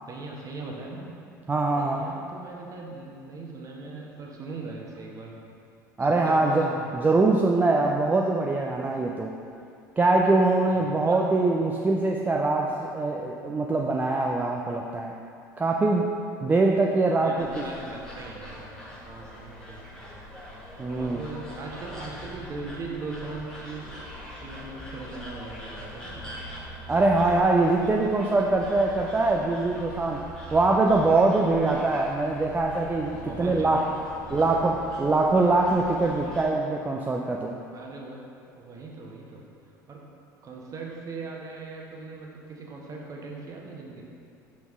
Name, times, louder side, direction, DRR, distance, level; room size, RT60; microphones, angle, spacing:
voice 1, 0.1-1.1 1.7-5.3 6.1-6.9 10.7-11.2 16.7-16.9 17.2-18.6 19.0-20.3 20.9-24.1 24.4-26.4 31.7-31.9 33.1-34.6 37.7-39.4 39.9-40.0 40.4-44.0, right 3 dB, 35° right, -1 dB, 1.1 m, -40 dB
voice 2, 1.5-2.1 6.0-9.3 10.0-15.1 15.6-16.1 16.4-17.5 20.8-21.2 26.9-33.9 34.3-37.6, right 2 dB, 15° right, 0 dB, 0.4 m, -23 dB
sound 1, 17.4-36.5, equal, 5° left, 1.4 m, -42 dB
5.9 x 5.3 x 3.6 m, 2.5 s
figure-of-eight pair, 70°, 10 cm